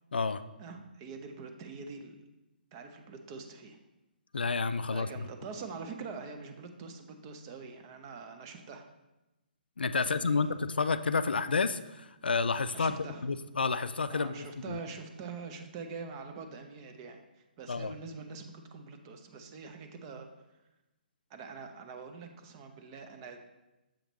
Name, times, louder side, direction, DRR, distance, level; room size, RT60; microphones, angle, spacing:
voice 1, 0.6-2.2 2.7-3.8 4.9-8.8 10.0-10.6 12.7-13.3 14.1-20.5 21.3-23.4, right 4 dB, 30° right, 5 dB, 0.6 m, -44 dB
voice 2, 4.3-5.1 9.8-12.9 13.2-14.8 17.7-17.9, left 4 dB, 80° left, 12 dB, 0.3 m, -30 dB
7.2 x 5.0 x 3.0 m, 1.0 s
figure-of-eight pair, 140°, 5 cm